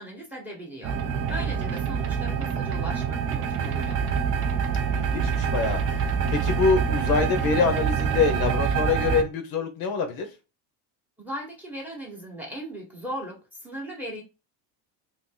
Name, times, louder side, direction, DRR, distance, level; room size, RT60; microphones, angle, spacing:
voice 1, 0.0-4.0 11.2-14.2, equal, 5° right, 1.0 m, -38 dB
sound 1, 0.8-9.2, right 6 dB, 30° right, 0.4 m, -26 dB
voice 2, 4.9-10.3, left 5 dB, 50° left, 0.8 m, -25 dB
2.7 x 2.6 x 3.6 m
cardioid pair, 150°, 46 cm